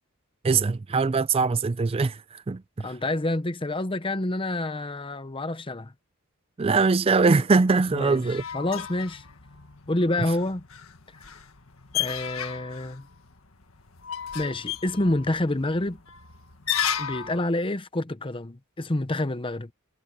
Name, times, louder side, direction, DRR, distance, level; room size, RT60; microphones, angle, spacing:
voice 1, 0.4-2.9 6.6-8.4, right 4 dB, 25° right, 0.4 m, -22 dB
voice 2, 2.8-5.9 7.9-8.2 8.5-9.2 9.9-10.6 11.9-13.1 14.3-16.0 17.0-19.7, left 1 dB, 25° left, 0.8 m, -28 dB
sound 1, 7.7-17.4, left 9 dB, 75° left, 1.7 m, -35 dB
head